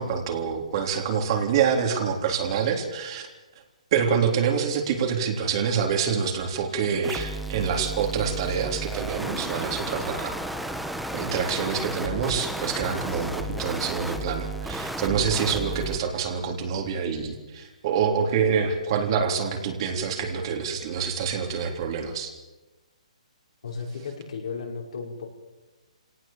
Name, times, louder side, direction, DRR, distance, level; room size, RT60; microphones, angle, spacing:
voice 1, 0.0-3.3 3.9-10.4 11.1-22.3, right 6 dB, 40° right, 2 dB, 3.6 m, -26 dB
sound 1, 7.0-16.0, right 1 dB, ahead, 1.5 m, -33 dB
voice 2, 23.6-25.3, left 5 dB, 65° left, 0 dB, 5.5 m, -34 dB
26.0 x 18.0 x 7.5 m, 1.2 s
hypercardioid pair, 150°, 4 cm